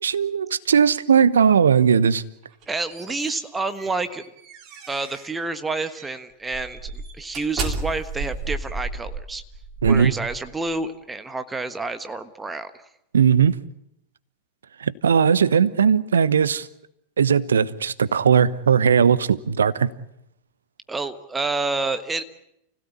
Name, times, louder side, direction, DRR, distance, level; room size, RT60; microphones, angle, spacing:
voice 1, 0.0-2.2 9.8-10.1 13.1-13.6 14.8-16.7 17.2-19.9, right 7 dB, 70° right, 0.9 m, -18 dB
sound 1, 2.4-5.4 5.9-6.1 6.5-10.8, right 3 dB, 35° right, 3.4 m, -33 dB
voice 2, 2.7-4.2 4.9-9.4 9.8-12.9 20.9-22.2, right 3 dB, 10° right, 1.4 m, -29 dB
29.5 x 16.5 x 8.4 m
figure-of-eight pair, 90°, 0 cm